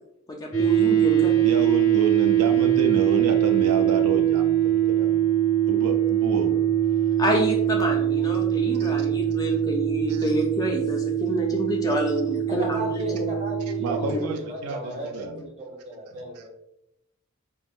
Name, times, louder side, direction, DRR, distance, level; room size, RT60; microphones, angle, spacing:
voice 1, 0.3-1.3 7.2-12.6 12.9-13.2 14.1-14.2, equal, 15° left, 0 dB, 0.3 m, -28 dB
sound 1, 0.5-14.1, right 11 dB, 75° left, 0.7 m, -22 dB
voice 2, 1.4-5.3 5.7-6.6 6.8-7.1 8.8-9.1 10.1-10.3 13.8-15.4 16.1-16.5, right 4 dB, 85° right, 5 dB, 0.3 m, -30 dB
voice 3, 12.5-16.5, equal, 30° right, -2 dB, 0.8 m, -35 dB
3.5 x 2.0 x 2.3 m, 0.82 s
head